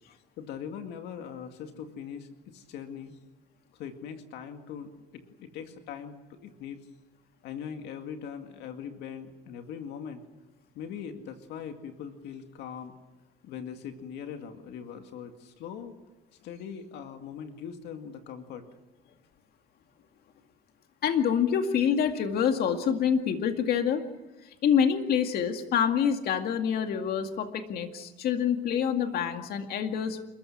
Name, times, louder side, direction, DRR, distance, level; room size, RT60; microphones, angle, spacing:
voice 1, 0.4-3.2 3.7-6.8 7.4-10.2 10.8-12.9 13.4-15.9 16.4-18.6, left 7 dB, 85° left, 6 dB, 2.2 m, -41 dB
voice 2, 21.0-24.0 24.4-30.2, left 8 dB, 65° left, 5 dB, 2.2 m, -26 dB
28.5 x 14.0 x 9.9 m, 1.1 s
cardioid pair, 110°, 17 cm